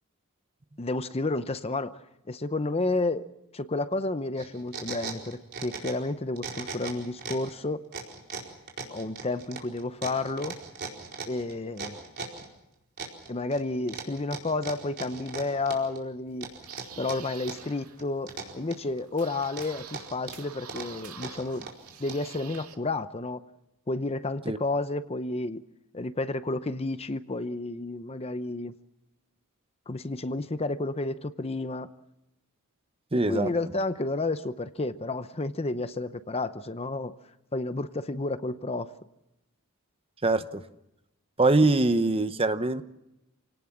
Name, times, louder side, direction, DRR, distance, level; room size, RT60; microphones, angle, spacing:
voice 1, 0.8-2.0 2.3-3.3 3.5-7.8 8.9-10.6 11.3-12.0 13.3-16.5 17.0-21.7 22.0-23.4 23.9-25.6 25.9-28.8 29.9-31.9 33.3-37.1 37.5-38.9, left 2 dB, 25° left, 12 dB, 0.8 m, -31 dB
sound 1, 4.4-6.1 6.4-7.5 7.9-12.5 13.0-13.6 13.9-16.0 16.4-17.7 18.0-19.0 19.4-22.4, right 4 dB, 50° right, 4.5 m, -38 dB
sound 2, 16.3-22.7, right 7 dB, 80° right, 2.1 m, -47 dB
voice 2, 33.1-33.5 40.2-40.6 41.4-42.8, right 2 dB, 25° right, 11 dB, 0.9 m, -23 dB
28.0 x 18.5 x 7.3 m, 0.91 s
head